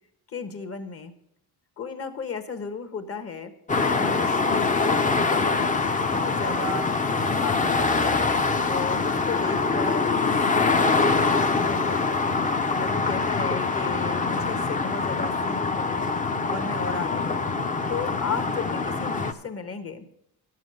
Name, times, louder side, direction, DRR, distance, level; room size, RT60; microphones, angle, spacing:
voice 1, 0.3-1.1 1.8-3.5 4.0-5.6 6.1-7.0 7.3-16.0 16.5-17.5 17.9-20.0, left 5 dB, 35° left, 8 dB, 1.2 m, -34 dB
sound 1, 3.7-19.3, left 4 dB, 20° left, 0.7 m, -24 dB
11.0 x 7.4 x 6.4 m, 0.75 s
cardioid pair, 110°, 39 cm